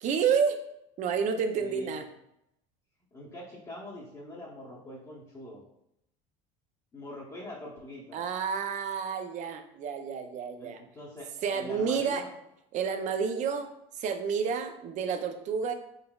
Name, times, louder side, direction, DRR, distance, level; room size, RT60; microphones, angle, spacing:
voice 1, 0.0-0.6 1.0-2.0 8.1-10.8 11.4-12.2 12.7-13.7 13.9-15.7, right 6 dB, 45° right, 7 dB, 0.5 m, -30 dB
voice 2, 1.6-2.0 3.1-5.6 6.9-8.2 10.6-11.3 11.5-12.3, left 1 dB, 20° left, -7 dB, 0.8 m, -43 dB
3.9 x 3.8 x 2.3 m, 0.80 s
supercardioid pair, 120°, 17 cm